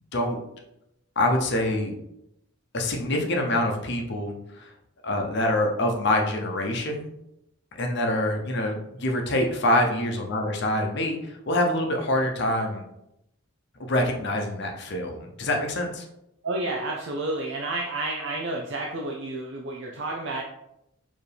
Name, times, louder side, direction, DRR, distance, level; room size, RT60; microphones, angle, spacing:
voice 1, 1.2-1.9 2.7-4.7 5.0-7.0 7.8-12.8 13.9-16.0, left 1 dB, 55° left, 2 dB, 0.7 m, -25 dB
voice 2, 16.4-20.4, right 2 dB, 60° right, -1 dB, 0.5 m, -30 dB
4.5 x 2.9 x 3.4 m, 0.82 s
head